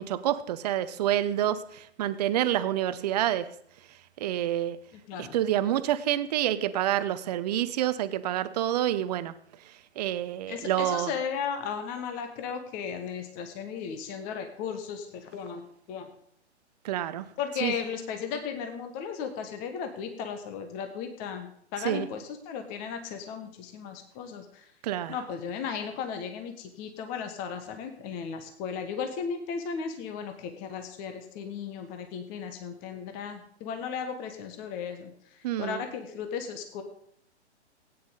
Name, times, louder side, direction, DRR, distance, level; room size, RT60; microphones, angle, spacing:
voice 1, 0.0-3.5 4.2-4.8 5.2-9.3 10.0-11.1 16.8-17.3 17.6-17.7 21.8-22.1 24.8-25.1 35.4-35.8, right 12 dB, 35° right, 14 dB, 0.7 m, -28 dB
voice 2, 10.5-16.1 17.4-24.7 25.1-36.8, left 6 dB, 25° left, 7 dB, 1.2 m, -36 dB
17.0 x 9.4 x 3.9 m, 0.69 s
figure-of-eight pair, 125°, 35 cm